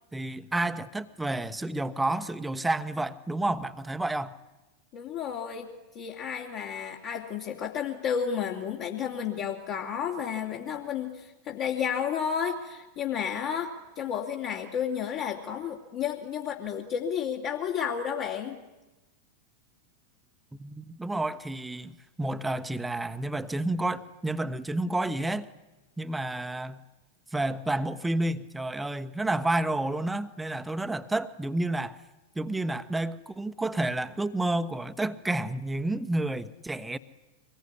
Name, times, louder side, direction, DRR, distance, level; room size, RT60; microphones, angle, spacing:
voice 1, 0.1-4.4 20.6-25.5 26.0-26.8 27.3-32.0 32.3-37.0, right 2 dB, 5° right, 1.2 m, -30 dB
voice 2, 4.9-5.7 5.9-18.6, left 7 dB, 40° left, 2.8 m, -32 dB
24.5 x 20.5 x 9.8 m
figure-of-eight pair, 90°, 0 cm